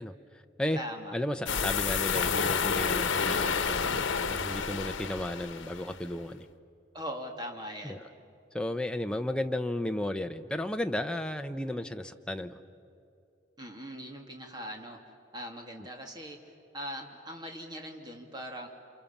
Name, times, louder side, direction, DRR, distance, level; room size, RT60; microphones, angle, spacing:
voice 1, 0.0-0.8 1.1-6.5 7.8-8.0 8.5-12.6, left 1 dB, 5° left, 6 dB, 0.7 m, -34 dB
voice 2, 0.8-1.2 6.9-8.0 13.6-18.7, equal, 20° right, 2 dB, 2.4 m, -41 dB
sound 1, 1.5-5.9, left 6 dB, 90° left, 1.0 m, -29 dB
29.0 x 27.0 x 7.2 m, 2.6 s
head